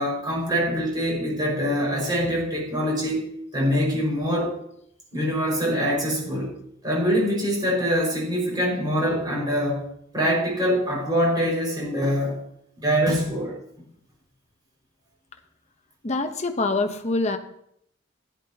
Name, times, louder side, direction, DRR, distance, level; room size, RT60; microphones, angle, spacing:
voice 1, 0.0-4.5 5.1-6.5 6.8-9.8 10.1-12.4 12.8-13.6, equal, 20° right, -4 dB, 5.4 m, -24 dB
voice 2, 16.0-17.4, left 3 dB, 35° left, 7 dB, 0.9 m, -25 dB
16.0 x 10.5 x 2.9 m, 0.73 s
head